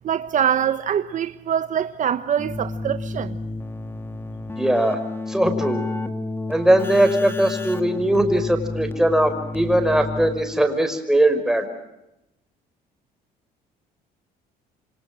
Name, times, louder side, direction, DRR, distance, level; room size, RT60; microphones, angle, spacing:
voice 1, 0.0-3.4, right 9 dB, 50° right, 1.1 m, -24 dB
Keyboard (musical), 2.4-10.7, left 2 dB, 15° left, 2.3 m, -31 dB
voice 2, 4.6-5.0 5.3-5.8 6.5-11.6, right 1 dB, 5° right, 5.6 m, -20 dB
28.5 x 25.5 x 7.5 m
cardioid pair, 110°, 17 cm